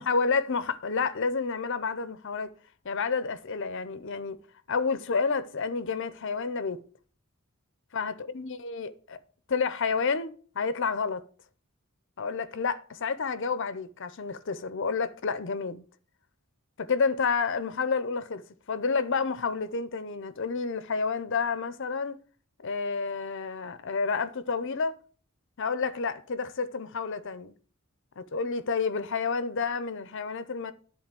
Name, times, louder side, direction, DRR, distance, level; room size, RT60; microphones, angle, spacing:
voice 1, 0.0-2.5 2.8-4.4 4.7-6.8 7.9-9.2 9.5-11.3 12.2-15.8 16.8-22.2 22.6-25.0 25.6-27.5 28.2-30.7, left 5 dB, 60° left, 0.7 m, -30 dB
10.5 x 4.0 x 7.6 m
head